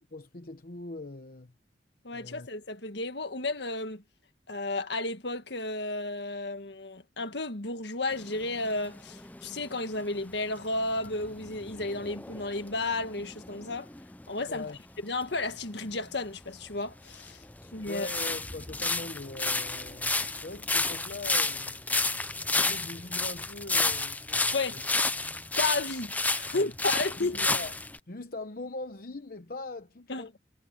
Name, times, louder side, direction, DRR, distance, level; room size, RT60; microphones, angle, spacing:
voice 1, 0.1-1.5 2.1-2.5 14.5-14.8 17.6-21.9 22.5-24.8 26.5-26.7 27.2-27.7 28.1-30.4, left 2 dB, 55° left, 0.9 m, -41 dB
voice 2, 2.0-4.0 4.5-13.9 14.3-14.6 15.0-17.4 17.7-18.1 24.5-24.8 25.6-27.4 30.1-30.3, left 2 dB, 75° left, 1.7 m, -33 dB
sound 1, 8.1-14.2 15.8-15.9 16.7-28.0, left 3 dB, 10° left, 0.5 m, -31 dB
head